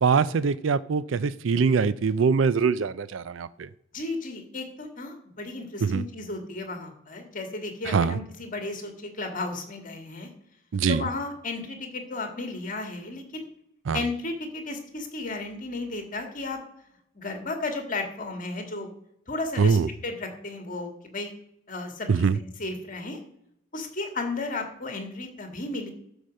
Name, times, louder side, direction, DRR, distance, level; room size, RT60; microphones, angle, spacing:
voice 1, 0.0-3.7 5.8-6.0 7.8-8.2 10.7-11.1 13.9-14.0 19.6-19.9 22.1-22.4, right 5 dB, 70° right, 16 dB, 0.4 m, -23 dB
voice 2, 3.9-10.3 10.9-13.4 13.9-16.6 17.1-18.9 19.3-19.8 20.0-21.3 21.7-23.2 23.7-25.9, left 3 dB, 40° left, 5 dB, 1.9 m, -34 dB
13.0 x 5.1 x 6.4 m, 0.75 s
head